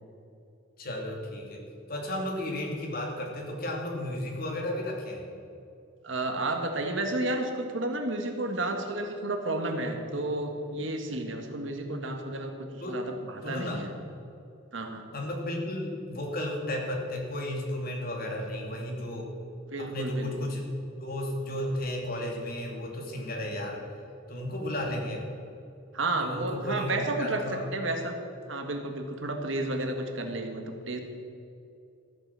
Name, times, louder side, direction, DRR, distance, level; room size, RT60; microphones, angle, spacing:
voice 1, 0.8-1.6 1.9-5.3 12.8-13.1 13.4-13.8 15.1-19.3 19.8-20.7 21.0-23.8 24.3-25.3 26.2-27.7, left 1 dB, 45° left, 0 dB, 2.6 m, -33 dB
voice 2, 6.0-13.9 14.7-15.0 19.7-20.5 25.9-27.4 27.7-28.2 28.5-31.0, right 2 dB, 65° right, 4 dB, 1.6 m, -32 dB
14.0 x 9.0 x 7.5 m, 2.6 s
head